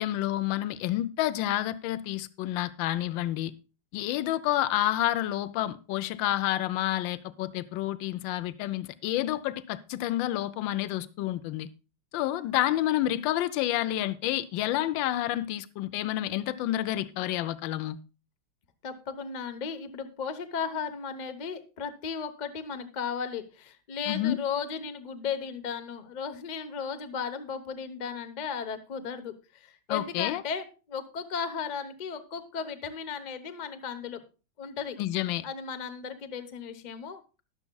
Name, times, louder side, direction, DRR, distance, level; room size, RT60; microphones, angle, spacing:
voice 1, 0.0-3.5 3.9-11.7 12.1-18.0 24.1-24.4 29.9-30.4 35.0-35.4, left 14 dB, 75° left, 1.3 m, -29 dB
voice 2, 18.8-34.2 34.6-35.0 35.4-37.4, left 6 dB, 45° left, 0.5 m, -35 dB
20.5 x 7.1 x 2.3 m
omnidirectional pair, 2.3 m